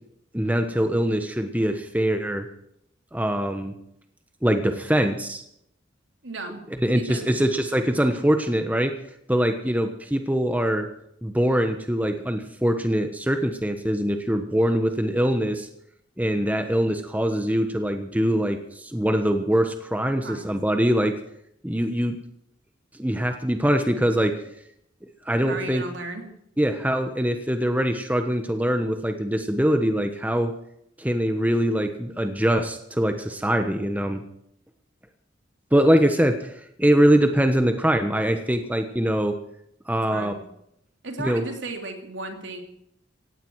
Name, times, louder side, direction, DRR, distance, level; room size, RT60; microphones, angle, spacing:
voice 1, 0.3-2.5 3.1-3.7 4.4-5.4 6.8-8.9 9.3-10.9 11.2-15.7 16.2-21.1 21.6-22.2 23.0-24.3 25.2-25.8 26.6-30.5 31.0-34.2 35.7-36.5 36.8-39.4 39.9-40.3 41.2-41.4, equal, 10° right, 6 dB, 1.1 m, -23 dB
voice 2, 6.2-6.6 6.9-7.3 20.2-20.5 25.4-26.3 40.1-40.4 41.0-42.6, right 2 dB, 70° right, 4 dB, 3.2 m, -34 dB
17.5 x 16.0 x 4.8 m, 0.74 s
head